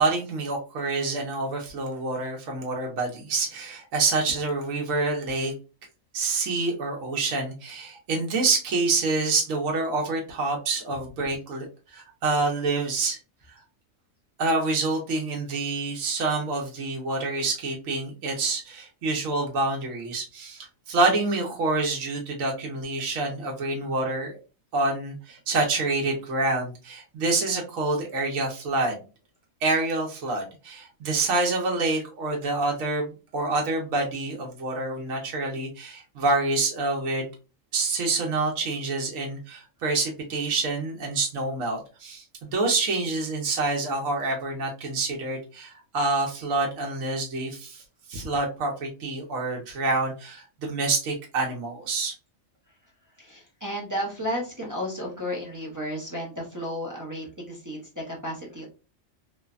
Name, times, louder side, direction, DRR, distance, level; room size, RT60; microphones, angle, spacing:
voice 1, 0.0-5.5 6.1-13.2 14.4-24.3 24.7-29.0 29.6-37.3 37.7-47.8 48.1-52.1, right 3 dB, 75° right, 0 dB, 1.1 m, -27 dB
voice 2, 53.2-58.7, equal, 25° right, -3 dB, 0.5 m, -33 dB
3.1 x 2.1 x 2.3 m, 0.32 s
omnidirectional pair, 1.4 m